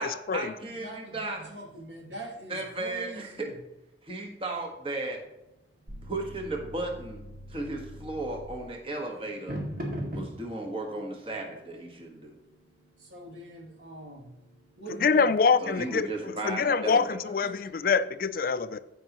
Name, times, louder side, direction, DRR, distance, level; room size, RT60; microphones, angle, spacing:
voice 1, 0.0-1.4 2.5-3.5 4.0-5.2 6.0-7.2 7.5-9.6 10.1-12.4 15.6-17.2, right 2 dB, 30° right, 2 dB, 1.3 m, -35 dB
voice 2, 0.6-3.6 13.0-14.3 14.8-15.6 16.4-17.7, right 2 dB, 85° right, -1 dB, 2.5 m, -44 dB
sound 1, 5.1-15.7, equal, 50° right, 2.1 m, -44 dB
sound 2, 5.9-8.7, equal, 65° right, 1.1 m, -45 dB
voice 3, 15.0-16.1 16.4-18.8, left 5 dB, 50° left, 13 dB, 0.4 m, -25 dB
15.0 x 5.3 x 3.0 m, 0.95 s
head